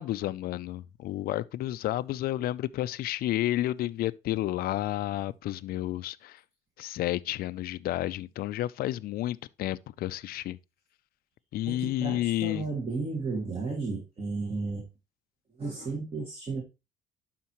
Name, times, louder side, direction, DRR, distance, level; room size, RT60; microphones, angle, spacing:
voice 1, 0.0-6.4 6.8-10.6 11.5-12.7, left 14 dB, 60° left, 0.4 m, -31 dB
voice 2, 11.7-14.9 15.5-16.6, right 3 dB, 30° right, 1.8 m, -33 dB
11.5 x 4.3 x 3.0 m
cardioid pair, 110°, 17 cm